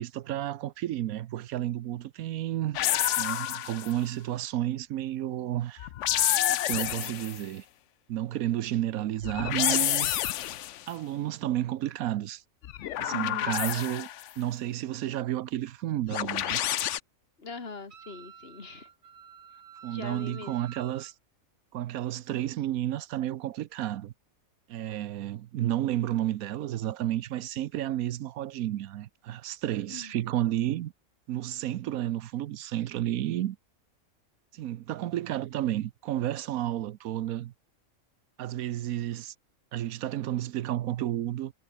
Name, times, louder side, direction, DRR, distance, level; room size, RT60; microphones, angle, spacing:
voice 1, 0.0-2.8 3.2-5.9 6.4-7.6 8.1-10.2 10.9-12.4 13.0-14.1 14.4-16.6 19.8-21.1 21.7-24.1 24.7-30.9 31.3-33.6 34.5-37.5 38.4-39.3 39.7-41.5, right 13 dB, 90° right, 1.1 m, -31 dB
sound 1, 2.7-4.0 5.8-7.4 9.2-10.8 12.6-14.3 16.1-17.0, left 12 dB, 65° left, 0.9 m, -28 dB
voice 2, 13.1-13.6 17.4-18.9 19.9-20.5 29.9-30.1, left 4 dB, 45° left, 2.5 m, -42 dB
Wind instrument woodwind instrument, 17.9-21.1, right 7 dB, 70° right, 1.8 m, -49 dB
omnidirectional pair, 1.4 m